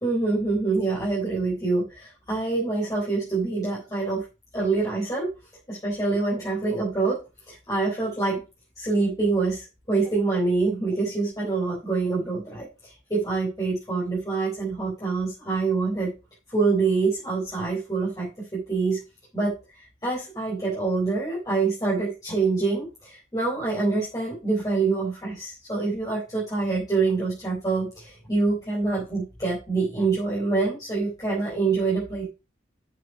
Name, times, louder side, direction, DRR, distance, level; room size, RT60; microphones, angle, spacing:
voice 1, 0.0-4.2 4.5-5.3 5.7-7.2 7.5-8.4 8.8-16.1 16.5-19.0 19.3-19.5 20.0-32.3, right 3 dB, 20° left, -6 dB, 4.0 m, -26 dB
8.4 x 6.8 x 4.7 m, 0.28 s
head